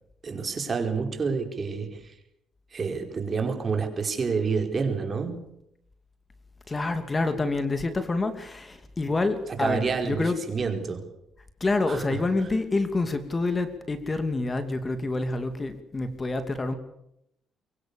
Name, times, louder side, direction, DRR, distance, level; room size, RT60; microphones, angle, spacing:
voice 1, 0.2-2.1 2.7-5.5 9.5-11.1 11.9-12.2, right 5 dB, 40° right, 5 dB, 4.9 m, -28 dB
voice 2, 6.7-10.4 11.6-16.8, left 3 dB, 25° left, 9 dB, 2.6 m, -27 dB
24.0 x 23.5 x 7.1 m, 0.78 s
cardioid pair, 90°, 0 cm